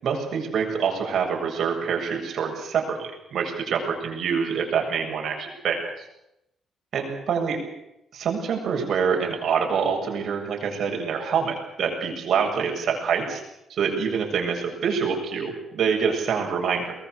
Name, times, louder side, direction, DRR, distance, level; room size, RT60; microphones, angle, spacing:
voice 1, 0.0-6.1 6.9-7.6 8.1-13.4 13.7-16.9, right 6 dB, 65° right, 2 dB, 7.4 m, -26 dB
23.0 x 20.5 x 8.3 m, 0.84 s
cardioid pair, 90°, 0 cm